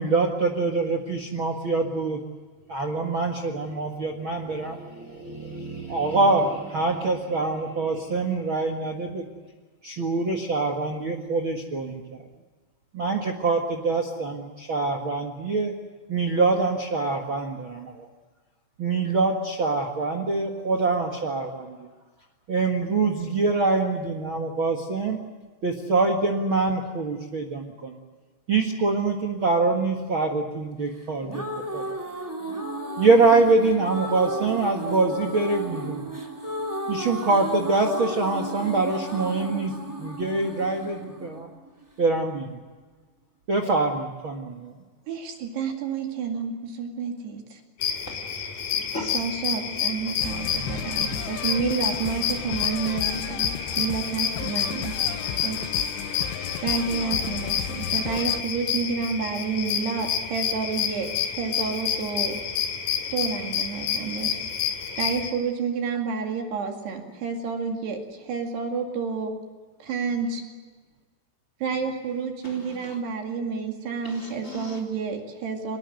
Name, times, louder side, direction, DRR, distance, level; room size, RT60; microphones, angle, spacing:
voice 1, 0.0-2.2 2.7-9.2 9.8-12.2 12.9-15.7 16.1-18.1 18.8-21.9 22.5-25.2 25.6-28.0 28.5-31.4 31.7-31.9 33.0-36.0 36.9-39.7 40.0-41.5 42.0-42.5 43.5-44.7 50.6-51.1, right 3 dB, 85° right, 4 dB, 1.1 m, -25 dB
sound 1, 31.0-42.0, right 1 dB, 5° right, 2.2 m, -34 dB
voice 2, 45.1-47.6 49.1-53.5 53.8-55.0 55.4-55.7 56.6-62.4 63.1-64.4 65.0-69.3 69.8-70.4 71.6-75.8, right 5 dB, 65° right, 3 dB, 4.1 m, -29 dB
sound 2, 47.8-65.3, left 8 dB, 50° left, 3.5 m, -29 dB
voice 3, 48.1-49.2 72.4-73.0 74.0-74.8, left 2 dB, 15° left, 4 dB, 3.6 m, -39 dB
sound 3, 50.2-58.4, left 11 dB, 80° left, 3.3 m, -35 dB
25.0 x 20.5 x 7.8 m, 1.3 s
omnidirectional pair, 5.4 m